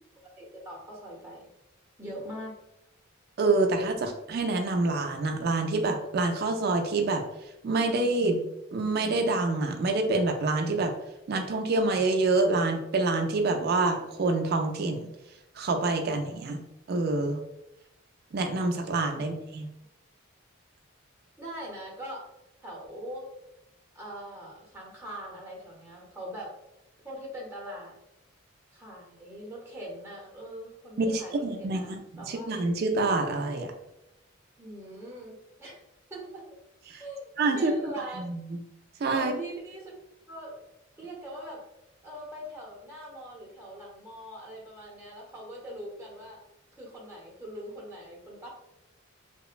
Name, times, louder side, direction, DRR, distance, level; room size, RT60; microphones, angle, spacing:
voice 1, 0.4-1.5 2.0-2.5 19.1-19.2 21.4-22.3 22.6-23.3 23.9-26.5 27.0-27.9 28.7-32.6 34.6-36.4 37.0-37.3 37.5-38.2 39.1-40.0 40.3-40.6 41.0-41.6 42.0-46.4 46.7-48.5, equal, 10° right, -5 dB, 0.7 m, -41 dB
voice 2, 3.4-7.2 7.6-8.5 8.7-10.9 11.3-15.1 15.6-16.6 16.9-17.4 18.3-19.7 31.0-32.0 32.2-33.7 36.9-37.0 37.4-37.7 38.2-38.6 39.0-39.3, right 3 dB, 45° right, 4 dB, 0.3 m, -27 dB
2.9 x 2.0 x 2.4 m, 0.86 s
head